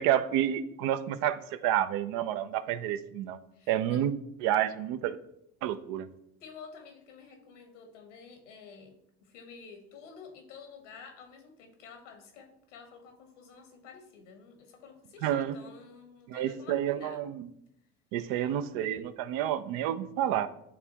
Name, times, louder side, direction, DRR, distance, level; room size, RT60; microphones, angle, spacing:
voice 1, 0.0-3.4 3.7-4.1 4.4-5.2 5.6-6.1 15.2-15.6 16.3-17.5 18.1-20.5, right 11 dB, 65° right, 12 dB, 0.6 m, -29 dB
voice 2, 3.5-4.0 6.4-8.9 9.2-17.2, left 5 dB, 85° left, 4 dB, 1.3 m, -50 dB
9.2 x 3.5 x 2.9 m, 0.78 s
hypercardioid pair, 65°, 35 cm